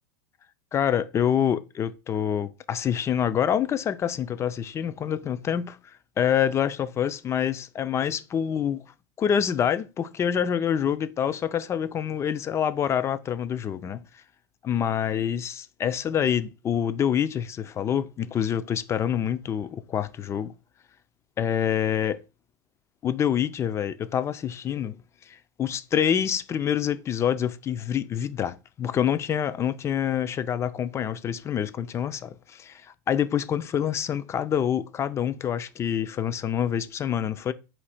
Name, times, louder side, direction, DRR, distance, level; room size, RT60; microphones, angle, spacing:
voice 1, 0.7-5.8 6.2-8.8 9.2-14.0 14.6-20.5 21.4-22.2 23.0-25.0 25.3-32.8 33.1-37.5, left 9 dB, 25° left, 0.4 m, -26 dB
4.5 x 2.8 x 4.1 m
supercardioid pair, 120°, 11 cm